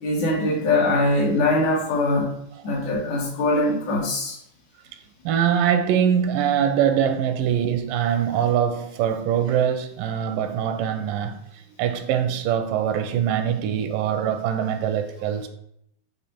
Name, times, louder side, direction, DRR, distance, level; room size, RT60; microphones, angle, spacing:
voice 1, 0.0-2.3 2.6-4.4, left 2 dB, 65° left, 2.9 m, -22 dB
voice 2, 5.3-11.4 11.8-15.5, right 9 dB, 85° right, 2.2 m, -23 dB
8.3 x 3.1 x 4.4 m
omnidirectional pair, 3.8 m